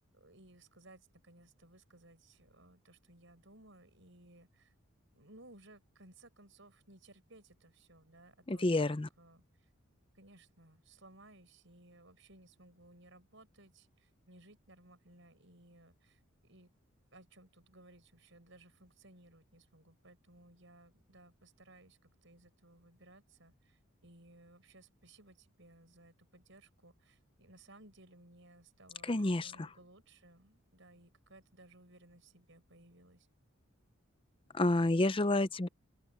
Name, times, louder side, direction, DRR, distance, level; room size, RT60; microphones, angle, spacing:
voice 1, 0.1-4.7 5.1-9.7 10.1-16.7 17.1-33.3, right 2 dB, 60° right, 6.8 m, -60 dB
voice 2, 8.5-9.1 29.0-29.5 34.5-35.7, left 2 dB, 25° left, 0.6 m, -29 dB
open air
head